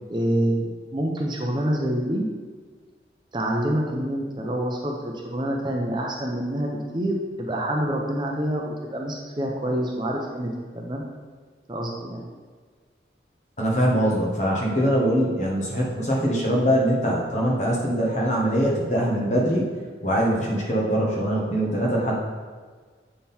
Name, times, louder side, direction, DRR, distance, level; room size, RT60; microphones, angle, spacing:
voice 1, 0.1-2.3 3.3-11.0 11.7-12.2, right 1 dB, 25° right, 0 dB, 0.6 m, -27 dB
voice 2, 13.6-19.7 20.0-22.1, equal, 40° left, -3 dB, 1.4 m, -22 dB
7.5 x 3.7 x 4.3 m, 1.5 s
head